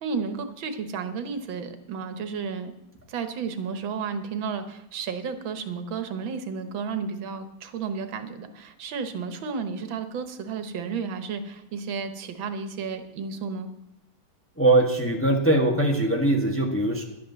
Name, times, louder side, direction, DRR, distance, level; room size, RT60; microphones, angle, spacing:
voice 1, 0.0-2.7 3.1-13.7, right 5 dB, 90° right, 8 dB, 1.9 m, -32 dB
voice 2, 14.6-17.0, right 2 dB, 5° left, 1 dB, 1.3 m, -21 dB
11.0 x 10.5 x 6.9 m, 0.84 s
omnidirectional pair, 2.1 m